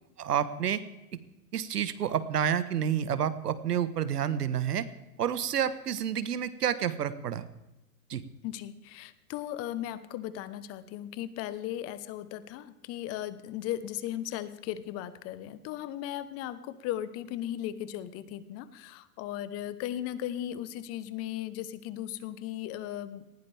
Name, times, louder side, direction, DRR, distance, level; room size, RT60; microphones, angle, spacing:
voice 1, 0.2-0.8 1.5-4.9 5.2-7.5 8.1-8.2, right 9 dB, 85° right, 13 dB, 1.5 m, -29 dB
voice 2, 8.4-23.2, left 12 dB, 30° left, 14 dB, 1.1 m, -37 dB
19.5 x 16.0 x 3.5 m, 1.0 s
hypercardioid pair, 125°, 46 cm